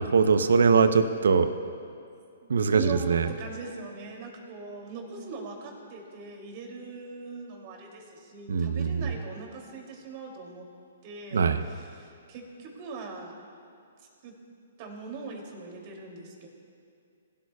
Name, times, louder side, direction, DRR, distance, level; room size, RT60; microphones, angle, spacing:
voice 1, 0.0-1.5 2.5-3.3 8.5-9.1 11.3-11.6, right 5 dB, 75° right, 10 dB, 0.8 m, -22 dB
voice 2, 2.4-10.6 11.0-13.3 14.2-14.3 14.8-16.5, right 4 dB, 40° right, 0 dB, 2.8 m, -41 dB
20.5 x 12.5 x 2.4 m, 2.5 s
hypercardioid pair, 130°, 0 cm